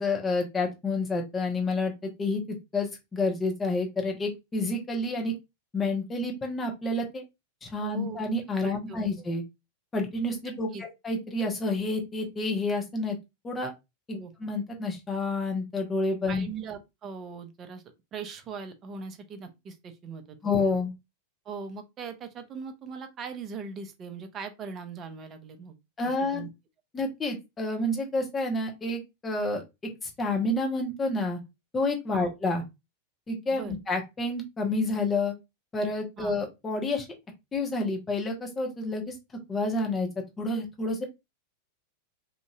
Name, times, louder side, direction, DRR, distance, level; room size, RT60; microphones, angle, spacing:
voice 1, 0.0-2.4 2.7-5.3 5.7-7.2 7.6-9.4 9.9-13.2 13.4-13.7 14.1-16.5 20.4-20.9 26.0-26.4 26.9-29.6 30.0-31.4 31.7-32.6 33.3-35.3 35.7-37.1 37.5-39.1 39.5-40.1 40.4-41.0, left 2 dB, 15° left, 0.9 m, -29 dB
voice 2, 7.8-8.2 8.6-9.3 10.7-10.8 14.1-14.3 16.3-17.8 18.1-20.7 21.5-25.7 26.3-26.5 32.1-32.3 33.5-33.7 36.2-36.3, right 5 dB, 30° right, 0.6 m, -40 dB
2.9 x 2.6 x 2.3 m
figure-of-eight pair, 90°, 0 cm